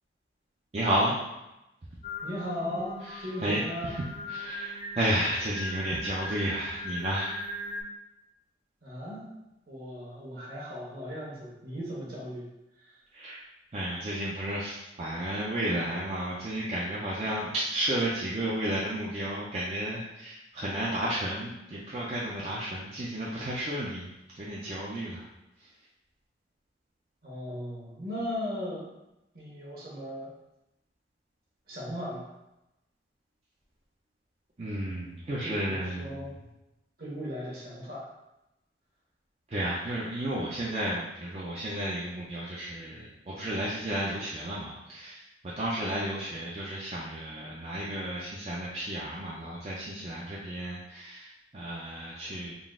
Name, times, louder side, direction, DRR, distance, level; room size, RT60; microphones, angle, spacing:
voice 1, 0.7-1.2 3.0-7.4 13.1-13.4 13.7-24.1 24.4-25.3 34.6-36.3 39.5-45.2 45.6-52.5, right 1 dB, 35° right, -6 dB, 0.5 m, -32 dB
Singing, 2.0-7.8, left 1 dB, 45° left, 0.5 m, -39 dB
voice 2, 2.2-3.9 8.8-9.3 9.7-12.5 27.2-28.8 29.3-30.3 31.7-32.3 35.4-36.3 37.0-38.1, equal, 55° right, -5 dB, 1.4 m, -37 dB
3.9 x 2.4 x 3.6 m, 0.91 s
head